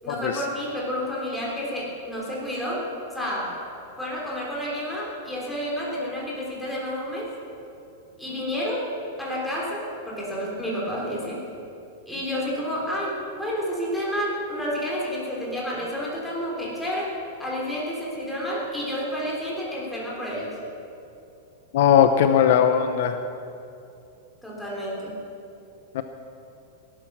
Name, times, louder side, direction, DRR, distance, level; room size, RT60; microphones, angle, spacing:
voice 1, 0.0-3.6 4.0-7.3 8.2-8.9 9.2-11.4 12.1-17.1 17.4-20.5 24.4-25.1, equal, ahead, -6 dB, 3.4 m, -30 dB
voice 2, 21.7-23.2 25.9-26.0, left 8 dB, 60° left, 8 dB, 0.7 m, -19 dB
18.0 x 11.5 x 6.1 m, 2.7 s
supercardioid pair, 160°, 0 cm